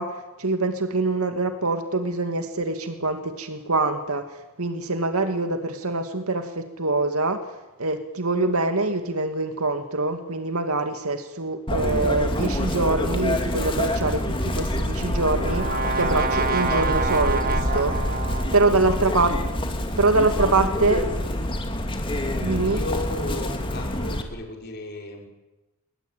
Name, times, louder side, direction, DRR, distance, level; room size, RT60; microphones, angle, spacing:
voice 1, 0.0-7.4 7.8-18.0 18.5-19.3 20.0-21.0 22.4-22.8, right 2 dB, 85° right, 7 dB, 2.5 m, -24 dB
Chirp tweet, 11.7-24.2, left 1 dB, 25° left, 3.3 m, -26 dB
Brass instrument, 14.7-18.8, right 4 dB, 40° right, 1.8 m, -28 dB
voice 2, 19.0-19.4 22.3-25.3, left 2 dB, 50° left, 2 dB, 5.7 m, -35 dB
28.0 x 23.0 x 9.2 m, 1.0 s
head